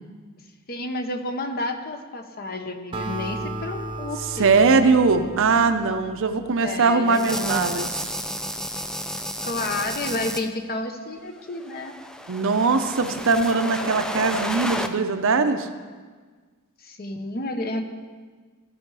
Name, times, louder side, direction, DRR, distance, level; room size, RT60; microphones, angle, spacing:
voice 1, 0.7-4.5 6.6-7.4 9.4-12.0 16.8-17.8, left 2 dB, 45° left, 6 dB, 0.8 m, -30 dB
Acoustic guitar, 2.9-6.5, right 2 dB, 25° right, 0.8 m, -35 dB
voice 2, 4.4-8.0 12.3-15.7, right 4 dB, 60° right, 8 dB, 0.6 m, -21 dB
sound 1, 7.1-10.4 11.5-14.9, equal, 5° left, 0.4 m, -31 dB
15.0 x 5.8 x 4.7 m, 1.5 s
head